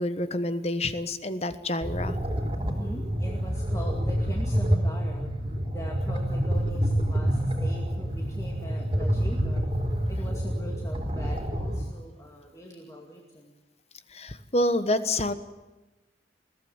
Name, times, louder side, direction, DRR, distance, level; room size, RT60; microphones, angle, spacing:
voice 1, 0.0-2.2 14.1-15.3, left 1 dB, 35° left, 12 dB, 1.2 m, -28 dB
sound 1, 1.8-11.8, equal, 30° right, 3.5 m, -27 dB
voice 2, 2.7-5.3 5.7-9.6 10.0-13.5, equal, 15° left, 0 dB, 2.3 m, -41 dB
22.0 x 16.0 x 9.6 m, 1.1 s
head